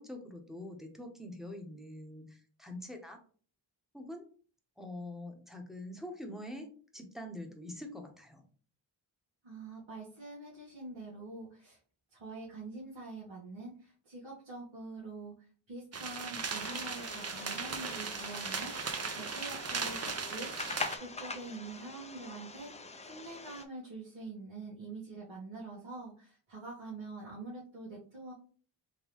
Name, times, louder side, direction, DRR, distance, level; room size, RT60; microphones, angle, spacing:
voice 1, 0.0-3.2 3.9-4.2 4.8-8.4, left 1 dB, ahead, 2 dB, 0.9 m, -45 dB
voice 2, 9.4-11.8 12.1-22.7 23.0-28.3, right 3 dB, 85° right, -7 dB, 1.5 m, -45 dB
sound 1, 15.9-21.0, right 5 dB, 35° right, 0.5 m, -38 dB
sound 2, 16.4-23.7, left 3 dB, 15° left, 0.4 m, -44 dB
3.8 x 3.4 x 3.0 m, 0.42 s
wide cardioid pair, 115°, 46 cm